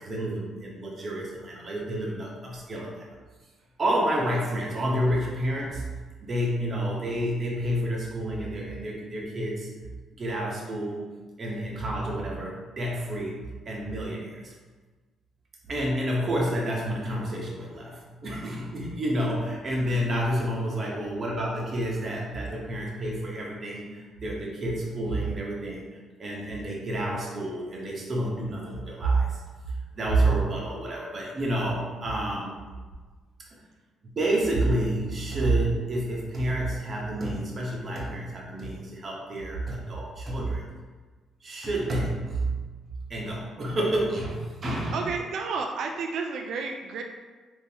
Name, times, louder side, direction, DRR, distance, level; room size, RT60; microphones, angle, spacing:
voice 1, 0.0-3.1 3.8-5.8 6.2-9.7 10.2-11.0 11.4-13.4 13.6-14.5 15.6-32.5 33.5-33.6 34.2-40.6 41.4-42.5 43.1-45.0, right 1 dB, 40° right, -3 dB, 0.9 m, -29 dB
voice 2, 44.9-47.0, right 4 dB, 70° right, 2 dB, 0.3 m, -31 dB
3.7 x 2.7 x 2.8 m, 1.3 s
cardioid pair, 90°, 0 cm